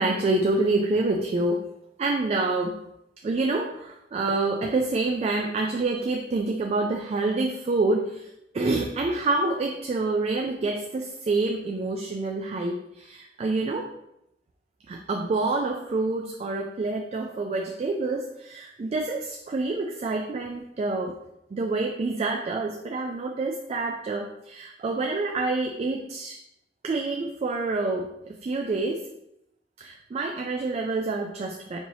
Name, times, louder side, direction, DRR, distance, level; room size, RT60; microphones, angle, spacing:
voice 1, 0.0-1.6 2.0-2.8 3.2-13.9 14.9-21.2 21.5-26.4 26.8-28.1 28.4-29.1 29.8-31.8, right 3 dB, 35° right, 2 dB, 0.3 m, -27 dB
4.6 x 2.7 x 2.7 m, 0.82 s
head